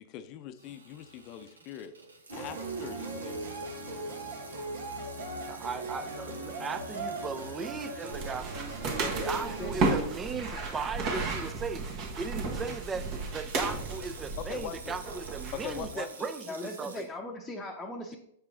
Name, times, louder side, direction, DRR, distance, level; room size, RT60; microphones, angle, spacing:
voice 1, 0.1-1.9 2.3-4.0 14.4-15.0 15.5-16.3, left 10 dB, 40° left, 11 dB, 0.6 m, -42 dB
Water tap faucet / Sink (filling or washing), 0.6-9.0 9.5-9.6 10.3-10.6 12.2-17.1, right 3 dB, 85° right, 0.9 m, -50 dB
sound 1, 2.3-9.7, right 2 dB, 65° right, 1.5 m, -38 dB
voice 2, 5.5-17.1, right 5 dB, 20° right, 11 dB, 0.5 m, -38 dB
sound 2, 8.1-15.9, right 3 dB, 40° right, 1.4 m, -33 dB
voice 3, 9.1-9.8 16.5-18.2, left 2 dB, 10° left, -2 dB, 0.9 m, -39 dB
6.7 x 4.7 x 3.7 m, 0.73 s
hypercardioid pair, 110°, 0 cm